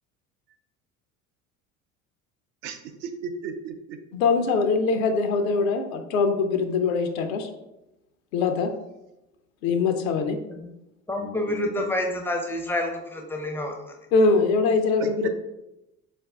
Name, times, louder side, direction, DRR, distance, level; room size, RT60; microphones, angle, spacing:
voice 1, 2.6-4.0 15.0-15.3, right 6 dB, 60° right, 7 dB, 0.5 m, -35 dB
voice 2, 4.1-7.5 8.3-8.7 9.6-10.4 14.1-15.3, left 4 dB, 80° left, 7 dB, 0.5 m, -22 dB
voice 3, 11.1-13.7, left 1 dB, 5° left, 2 dB, 0.4 m, -28 dB
4.0 x 2.5 x 2.2 m, 0.93 s
hypercardioid pair, 60°, 41 cm